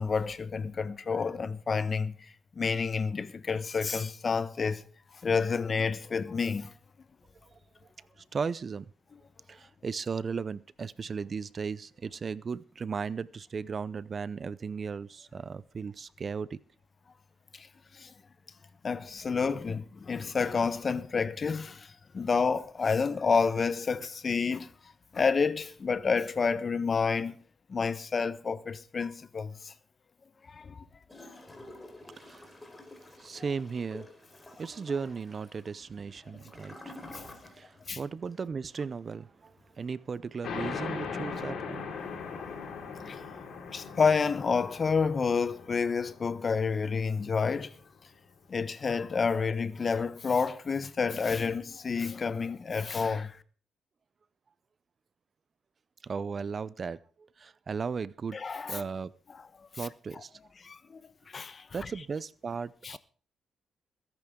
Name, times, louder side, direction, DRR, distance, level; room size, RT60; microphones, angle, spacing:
voice 1, 0.0-2.1 2.6-4.8 5.2-6.7 17.5-17.7 17.9-18.1 18.8-24.7 25.1-27.4 27.7-29.7 30.5-30.8 37.1-37.2 37.9-38.0 43.0-43.2 43.7-47.7 48.5-53.4 58.3-58.8 60.6-61.0 61.3-61.7 62.8-63.0, left 5 dB, 40° left, 1.1 m, -29 dB
voice 2, 8.0-8.9 9.5-16.6 32.0-32.7 33.0-34.1 34.6-41.9 56.0-58.4 58.6-59.1 59.7-60.4 61.7-63.0, right 5 dB, 40° right, 0.5 m, -36 dB
Gurgling / Toilet flush, 31.1-37.9 38.2-38.3, left 2 dB, 20° left, 4.1 m, -49 dB
sound 1, 40.4-47.6, left 5 dB, 65° left, 4.8 m, -40 dB
20.5 x 10.5 x 3.7 m
cardioid pair, 90°, 0 cm